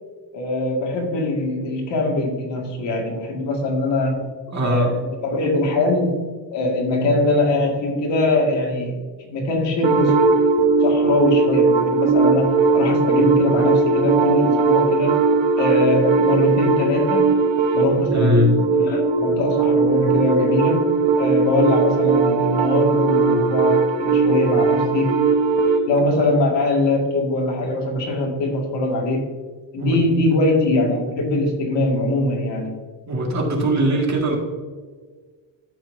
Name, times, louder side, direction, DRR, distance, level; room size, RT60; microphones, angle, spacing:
voice 1, 0.3-4.2 4.6-6.2 6.5-10.1 10.8-15.2 15.6-17.3 17.7-20.8 21.2-25.2 25.9-29.3 29.7-32.7, left 2 dB, 60° left, 0 dB, 2.0 m, -22 dB
voice 2, 4.5-4.9 18.1-18.5 29.8-30.0 33.1-34.4, right 1 dB, 35° right, -1 dB, 1.9 m, -20 dB
sound 1, 9.8-25.8, right 4 dB, 70° right, 1.2 m, -19 dB
13.5 x 5.8 x 2.6 m, 1.5 s
cardioid pair, 160°, 47 cm